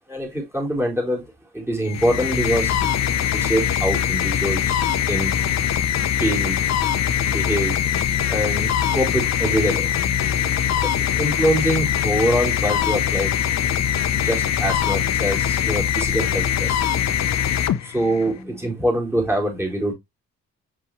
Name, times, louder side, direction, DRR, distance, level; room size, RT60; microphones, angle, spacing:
voice 1, 0.1-1.3 1.5-2.8 3.3-4.8 5.1-5.3 6.2-6.6 7.2-7.8 8.3-10.0 10.8-13.3 14.2-16.8 17.8-19.9, equal, 10° right, 4.1 m, -24 dB
sound 1, 1.8-18.4, left 9 dB, 60° left, 0.9 m, -22 dB
6.2 x 5.4 x 3.2 m
cardioid pair, 90°, 30 cm